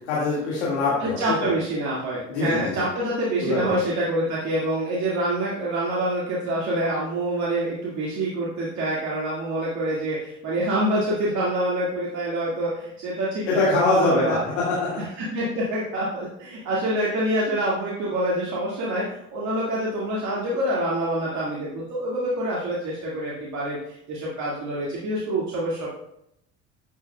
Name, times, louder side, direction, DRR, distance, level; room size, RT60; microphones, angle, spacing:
voice 1, 0.0-1.5 2.3-2.9 3.4-3.7 13.5-14.9, left 3 dB, 75° left, -6 dB, 2.0 m, -24 dB
voice 2, 1.0-14.4 15.2-25.9, right 1 dB, 55° right, -5 dB, 2.0 m, -26 dB
12.0 x 8.0 x 2.3 m, 0.78 s
figure-of-eight pair, 60°, 35 cm